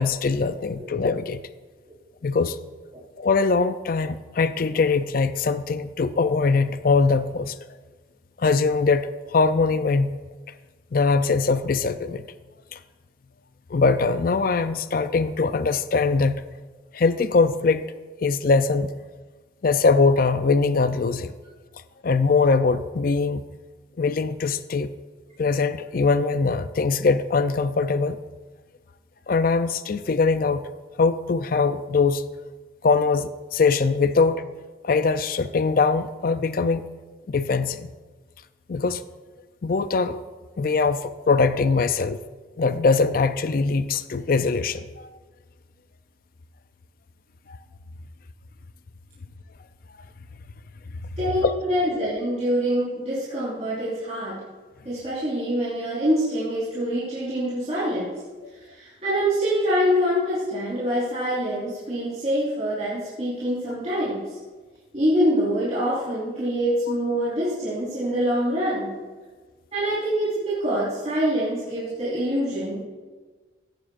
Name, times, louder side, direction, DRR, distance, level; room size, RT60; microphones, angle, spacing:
voice 1, 0.0-1.4 2.2-2.6 3.2-7.6 8.4-10.1 10.9-12.3 12.7-12.8 13.7-16.4 16.9-17.9 18.2-18.9 19.6-21.3 22.0-23.4 24.0-24.9 25.4-28.2 29.3-30.6 31.0-32.2 32.8-34.4 34.8-36.9 37.3-37.9 38.7-39.0 39.6-40.2 40.6-42.2 42.6-45.1 47.5-47.6 51.4-51.5, left 4 dB, 50° left, 12 dB, 0.4 m, -22 dB
voice 2, 51.2-54.4 54.8-58.1 58.5-64.4 64.9-68.9 69.7-72.9, equal, 35° right, -11 dB, 4.2 m, -25 dB
16.5 x 11.5 x 2.5 m, 1.3 s
head